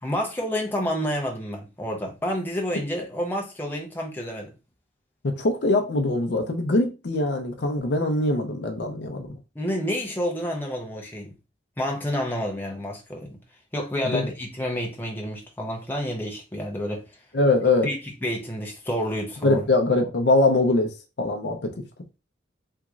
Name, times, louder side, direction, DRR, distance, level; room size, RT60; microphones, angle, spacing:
voice 1, 0.0-4.5 9.5-11.3 11.8-13.4 13.7-17.0 17.8-19.6, equal, 10° left, 0.7 m, -29 dB
voice 2, 5.2-9.3 14.0-14.3 17.3-17.9 19.4-20.9 21.2-21.7, left 2 dB, 60° left, 0.6 m, -22 dB
3.6 x 2.9 x 2.4 m
head